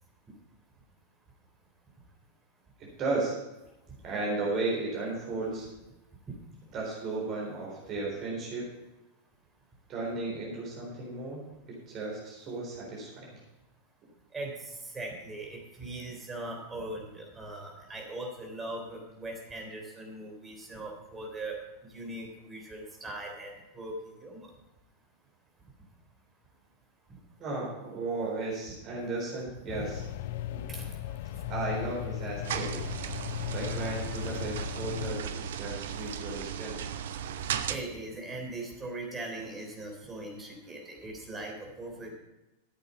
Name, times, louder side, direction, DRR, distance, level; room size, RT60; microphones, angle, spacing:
voice 1, 2.8-3.3 4.0-5.7 6.7-8.7 9.9-11.4 11.7-13.4 27.4-30.0 30.5-30.6 31.5-32.8 33.4-36.9, right 3 dB, 35° right, -3 dB, 4.0 m, -34 dB
voice 2, 14.3-21.6 21.9-24.5 30.7-31.0 37.7-42.1, right 2 dB, 15° right, 1 dB, 3.7 m, -40 dB
sound 1, 29.7-35.2, left 12 dB, 55° left, 0.5 m, -37 dB
sound 2, 32.4-37.8, right 9 dB, 60° right, 0.7 m, -36 dB
13.5 x 8.2 x 5.6 m, 1.0 s
figure-of-eight pair, 90°, 0 cm